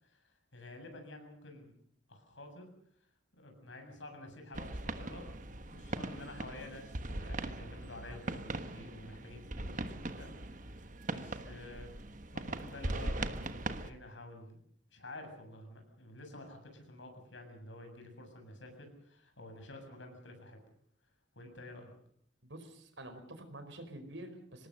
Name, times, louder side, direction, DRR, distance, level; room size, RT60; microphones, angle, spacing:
voice 1, 0.0-1.7 2.1-2.7 3.3-10.8 11.1-11.9 12.3-14.6 14.9-20.6 21.4-21.9, left 1 dB, 85° left, 4 dB, 7.4 m, -50 dB
sound 1, 4.5-13.9, right 2 dB, 45° right, 1.3 m, -40 dB
voice 2, 22.4-24.7, right 1 dB, 80° right, 8 dB, 4.7 m, -48 dB
25.5 x 19.0 x 6.6 m, 0.65 s
head